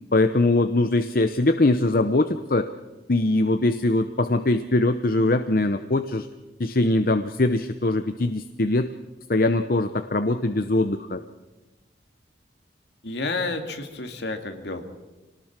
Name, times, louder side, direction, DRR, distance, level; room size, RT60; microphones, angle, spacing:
voice 1, 0.1-2.7 3.1-6.3 6.6-8.9 9.3-11.2, left 2 dB, 50° left, 9 dB, 0.8 m, -22 dB
voice 2, 13.0-14.8, left 3 dB, 70° left, 6 dB, 2.4 m, -30 dB
26.0 x 19.0 x 6.1 m, 1.1 s
head